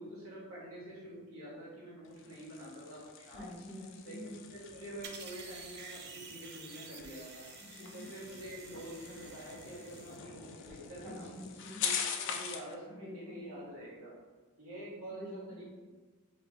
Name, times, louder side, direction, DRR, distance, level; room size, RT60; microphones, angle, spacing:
voice 1, 0.0-3.4 4.0-7.5 7.9-11.4 11.8-14.1 14.6-15.6, right 1 dB, 75° right, -6 dB, 1.2 m, -47 dB
sound 1, 2.0-12.7, left 7 dB, 60° left, 0.3 m, -43 dB
voice 2, 3.3-4.3 7.7-8.1 11.0-11.8 12.9-13.4 15.2-15.6, left 1 dB, 10° right, -8 dB, 1.3 m, -47 dB
sound 2, 5.0-10.2, right 6 dB, 50° right, 0.4 m, -50 dB
3.0 x 2.5 x 3.5 m, 1.5 s
head